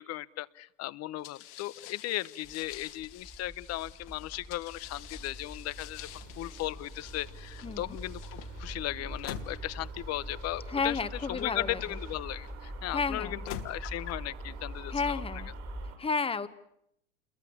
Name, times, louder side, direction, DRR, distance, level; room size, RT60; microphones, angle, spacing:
voice 1, 0.0-6.1 6.4-11.0 11.3-15.2, left 16 dB, 45° left, 18 dB, 0.9 m, -37 dB
sound 1, 1.2-12.5 13.2-14.3, left 12 dB, 70° left, 2.5 m, -48 dB
Deep Bass For A Depressing Video, 2.4-15.9, equal, ahead, 2.0 m, -43 dB
sound 2, 4.8-16.0, right 9 dB, 70° right, 6.5 m, -51 dB
voice 2, 7.6-8.0 10.7-11.8 12.9-13.4 14.9-15.5 16.0-16.5, left 5 dB, 15° left, 12 dB, 1.3 m, -32 dB
28.0 x 22.5 x 7.2 m, 0.75 s
hypercardioid pair, 100°, 37 cm